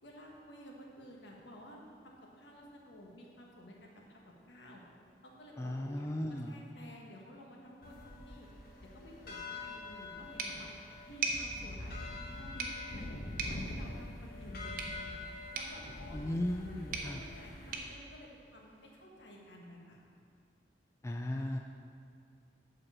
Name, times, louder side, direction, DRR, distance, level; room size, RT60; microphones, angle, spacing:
voice 1, 0.0-4.8 5.2-8.5 8.8-10.7 11.1-13.1 13.4-15.2 15.5-16.2 16.5-20.0, equal, 75° left, -1 dB, 1.4 m, -53 dB
voice 2, 5.6-6.6 16.1-17.2 21.0-21.6, left 1 dB, 15° left, 3 dB, 0.3 m, -36 dB
sound 1, 7.8-17.7, left 2 dB, 50° left, 1.1 m, -45 dB
sound 2, 10.4-19.1, right 4 dB, 50° right, 0.8 m, -43 dB
7.9 x 4.7 x 7.2 m, 2.4 s
head